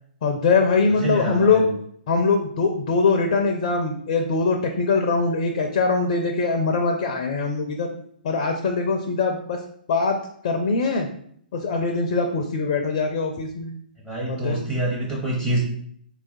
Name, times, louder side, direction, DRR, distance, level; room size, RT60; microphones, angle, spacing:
voice 1, 0.2-1.7 2.1-7.9 8.2-9.6 9.9-10.2 10.4-11.1 11.5-13.7 14.3-14.6, left 4 dB, 40° left, 4 dB, 0.4 m, -22 dB
voice 2, 1.0-1.8 14.0-15.6, right 2 dB, 15° right, -5 dB, 0.7 m, -26 dB
4.3 x 2.3 x 2.6 m, 0.64 s
figure-of-eight pair, 120°, 5 cm